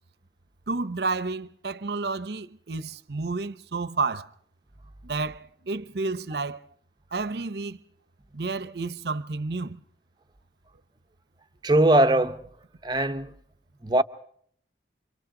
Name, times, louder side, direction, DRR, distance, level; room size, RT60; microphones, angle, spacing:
voice 1, 0.7-4.3 5.0-6.6 7.1-7.8 8.3-9.8, right 3 dB, 65° right, 0.8 m, -30 dB
voice 2, 11.6-12.4 12.8-13.3 13.8-14.0, right 1 dB, 25° right, 0.8 m, -20 dB
29.5 x 26.0 x 3.8 m
head